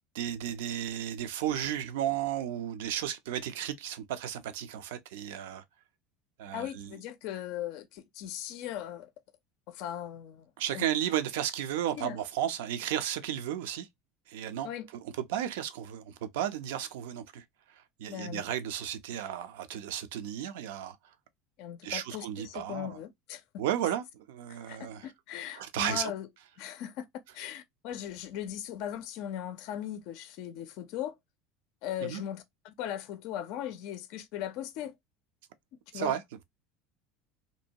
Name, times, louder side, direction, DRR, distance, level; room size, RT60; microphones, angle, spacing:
voice 1, 0.1-5.6 6.4-6.9 10.6-13.9 14.3-14.7 15.0-21.0 21.8-23.0 23.6-25.1 25.5-26.1 32.0-32.2 35.9-36.4, right 10 dB, 80° right, 0.4 m, -34 dB
voice 2, 6.5-9.1 9.7-10.9 12.0-12.2 14.6-14.9 18.1-18.4 21.6-23.6 24.5-26.3 26.6-27.1 27.3-31.2 31.8-35.0 35.9-36.2, left 11 dB, 65° left, 0.4 m, -39 dB
2.6 x 2.2 x 2.7 m
hypercardioid pair, 90°, 0 cm